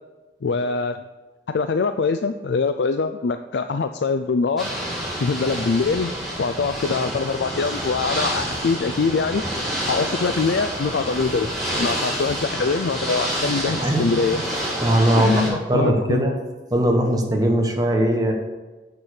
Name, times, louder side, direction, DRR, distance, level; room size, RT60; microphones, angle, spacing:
voice 1, 0.4-1.0 1.5-4.7 5.2-6.1 6.4-9.4 9.9-14.4 15.2-16.3, left 4 dB, 70° left, 9 dB, 0.4 m, -23 dB
Ocean / Boat Water vehicle, 4.6-15.5, equal, ahead, 2.5 m, -28 dB
voice 2, 13.4-14.1 14.8-16.4 16.7-18.3, right 1 dB, 20° right, 1 dB, 1.3 m, -20 dB
7.5 x 6.8 x 6.4 m, 1.2 s
head